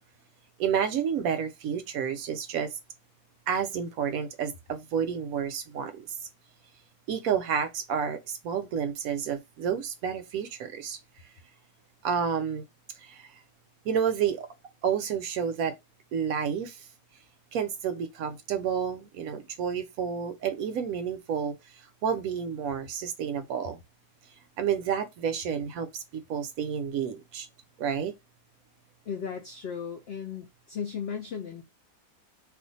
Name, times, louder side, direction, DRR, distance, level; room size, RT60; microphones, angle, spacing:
voice 1, 0.6-2.7 3.5-6.0 7.1-11.0 12.0-12.6 13.0-13.3 13.8-14.5 14.8-15.7 16.1-16.9 17.5-21.5 22.0-23.8 24.6-26.0 26.3-27.5 27.8-28.1, right 7 dB, 70° right, 0.9 m, -30 dB
voice 2, 29.1-31.6, left 7 dB, 85° left, 0.5 m, -36 dB
2.5 x 2.4 x 3.9 m
omnidirectional pair, 1.6 m